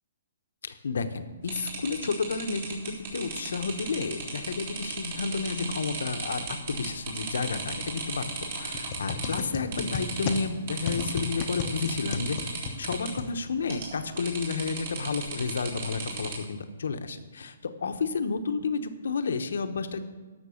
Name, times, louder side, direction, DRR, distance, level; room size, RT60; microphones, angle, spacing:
voice 1, 0.6-8.2 8.6-20.1, left 4 dB, 75° left, 8 dB, 1.0 m, -31 dB
sound 1, 1.5-9.4 9.7-10.4 10.7-13.1 13.7-13.9 14.2-16.3, right 4 dB, 50° right, 3.5 m, -35 dB
sound 2, 8.7-13.8, left 5 dB, 35° left, 0.7 m, -35 dB
12.5 x 6.0 x 6.4 m, 1.3 s
hypercardioid pair, 160°, 0 cm